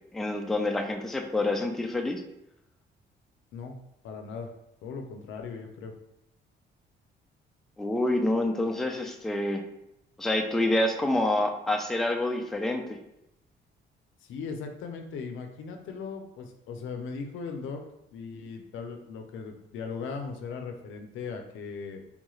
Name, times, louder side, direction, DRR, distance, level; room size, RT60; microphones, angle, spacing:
voice 1, 0.1-2.2 7.8-9.6 10.2-13.0, left 1 dB, ahead, 3 dB, 0.3 m, -27 dB
voice 2, 4.0-4.5 4.8-5.9 14.2-17.8 18.1-22.0, left 5 dB, 80° left, 4 dB, 0.5 m, -38 dB
3.5 x 2.3 x 3.1 m, 0.84 s
cardioid pair, 90°, 20 cm